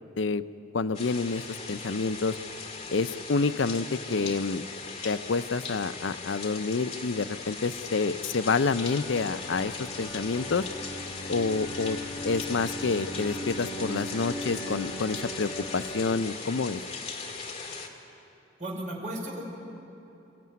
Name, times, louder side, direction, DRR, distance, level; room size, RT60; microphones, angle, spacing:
voice 1, 0.7-1.4 1.7-2.4 2.9-4.6 5.0-10.6 11.3-12.0 12.2-16.8, left 4 dB, 75° left, 12 dB, 0.6 m, -28 dB
sound 1, 0.9-17.9, left 4 dB, 35° left, 2.0 m, -39 dB
sound 2, 8.5-16.0, equal, 10° left, 2.1 m, -39 dB
voice 2, 18.6-19.4, right 1 dB, 40° right, -2 dB, 4.9 m, -35 dB
26.5 x 15.0 x 9.4 m, 2.9 s
head